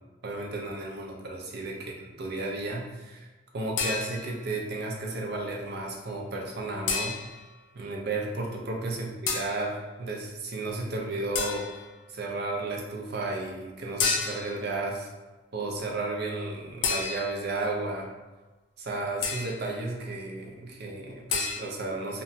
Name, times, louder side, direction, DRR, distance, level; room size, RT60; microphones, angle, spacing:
voice 1, 0.2-3.3 3.5-7.2 7.7-11.7 12.1-15.1 15.5-18.1 18.8-22.2, right 2 dB, 55° right, 0 dB, 0.5 m, -33 dB
sound 1, 3.8-4.5 6.9-7.5 9.3-9.6 11.3-11.9 14.0-14.6 16.8-17.5 19.2-19.7 21.3-21.6, left 5 dB, 65° left, 0.4 m, -30 dB
2.9 x 2.2 x 2.7 m, 1.2 s
head